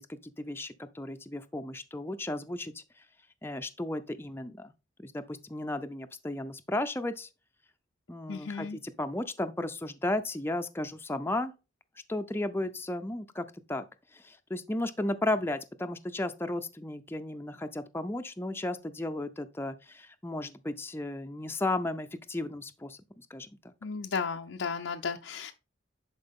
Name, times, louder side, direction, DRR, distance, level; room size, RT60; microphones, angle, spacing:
voice 1, 0.0-2.8 3.4-4.7 5.0-7.3 8.1-11.5 12.1-13.8 14.1-23.5, left 1 dB, 10° left, 0.4 m, -34 dB
voice 2, 8.3-8.8 23.8-25.5, left 5 dB, 85° left, 0.6 m, -34 dB
10.5 x 4.4 x 3.6 m
head